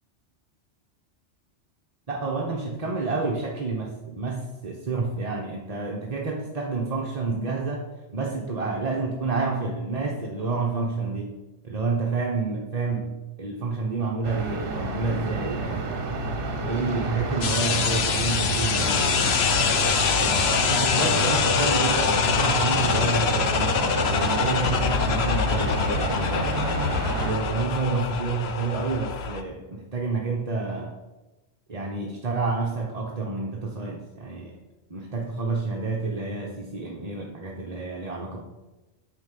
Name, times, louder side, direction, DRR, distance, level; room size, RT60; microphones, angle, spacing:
voice 1, 2.1-11.4 11.6-16.0 16.6-19.4 20.2-26.6 27.2-31.0 31.7-34.6 34.9-38.4, right 3 dB, 35° right, 0 dB, 1.0 m, -29 dB
sound 1, 14.2-27.3, right 3 dB, 55° right, 1.3 m, -30 dB
sound 2, 17.4-29.4, left 6 dB, 65° left, 1.0 m, -24 dB
10.0 x 4.7 x 7.5 m, 1.1 s
omnidirectional pair, 1.2 m